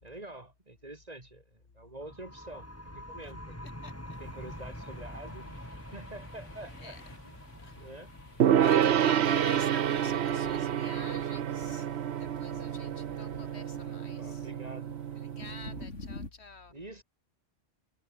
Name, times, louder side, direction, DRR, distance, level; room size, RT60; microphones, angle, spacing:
voice 1, 0.0-3.8 4.2-5.6 5.9-7.0 7.2-8.1 13.9-14.9 16.7-17.0, right 2 dB, 35° right, 2.7 m, -47 dB
sound 1, 2.0-13.4, equal, 10° left, 4.6 m, -47 dB
sound 2, 4.1-16.3, left 2 dB, 85° left, 4.5 m, -50 dB
Gong, 8.4-15.8, right 9 dB, 70° right, 1.0 m, -29 dB
voice 2, 8.5-11.9 12.2-14.5 15.1-16.7, left 4 dB, 65° left, 2.2 m, -47 dB
omnidirectional pair, 1.2 m